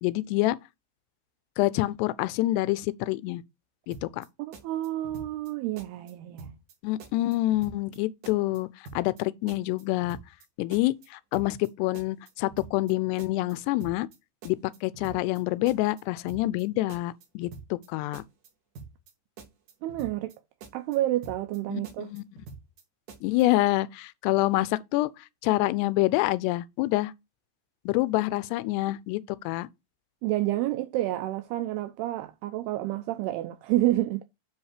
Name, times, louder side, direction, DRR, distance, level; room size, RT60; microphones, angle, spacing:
voice 1, 0.0-0.6 1.6-3.4 3.9-4.2 6.8-10.2 10.6-14.1 14.5-18.2 21.7-22.2 23.2-25.1 25.4-27.1 27.9-29.2 29.5-29.7, left 18 dB, 80° left, 2.5 m, -27 dB
sound 1, 3.9-4.3 4.5-5.5 5.8-6.1 6.4-6.7 7.0-8.0 8.2-8.6 8.9-9.2 9.5-10.5 10.7-11.1 11.3-11.7 12.0-12.9 13.2-13.5 13.8-14.2 14.4-15.4 15.7-16.0 16.3-16.6 16.9-17.9 18.1-18.5 18.8-19.1 19.4-20.4 20.6-21.0 21.2-21.6 21.8-22.8 23.1-23.4, right 4 dB, 55° right, 2.6 m, -46 dB
voice 2, 4.4-6.5 19.8-20.3 20.7-22.1 30.2-34.2, right 15 dB, 90° right, 2.3 m, -29 dB
10.0 x 3.5 x 4.8 m
omnidirectional pair, 5.3 m